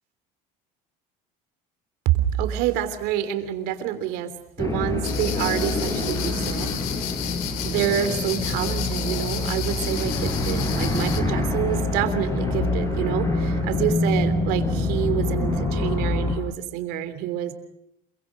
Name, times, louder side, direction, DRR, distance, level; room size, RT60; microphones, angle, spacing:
voice 1, 2.0-4.3 4.6-6.8 7.2-7.3 7.6-17.5, right 11 dB, 70° right, 10 dB, 3.3 m, -27 dB
sound 1, 4.6-16.4, left 2 dB, 20° left, 4.9 m, -25 dB
sound 2, 5.0-11.2, left 10 dB, 65° left, 3.0 m, -32 dB
28.0 x 23.5 x 6.5 m, 0.79 s
cardioid pair, 150°, 17 cm